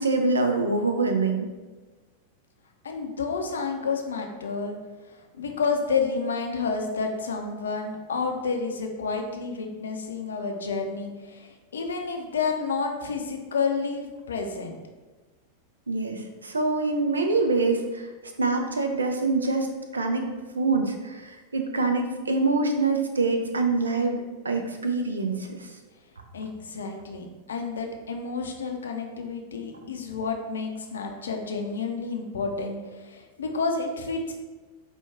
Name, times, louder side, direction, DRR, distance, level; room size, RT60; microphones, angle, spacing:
voice 1, 0.0-1.5 15.9-18.0 18.4-19.7 19.9-20.2 20.5-24.2 24.4-25.7, right 3 dB, 75° right, 5 dB, 0.4 m, -25 dB
voice 2, 2.8-4.7 5.4-14.8 26.3-34.3, left 4 dB, 70° left, 3 dB, 0.5 m, -30 dB
4.5 x 2.2 x 3.4 m, 1.3 s
figure-of-eight pair, 90°, 0 cm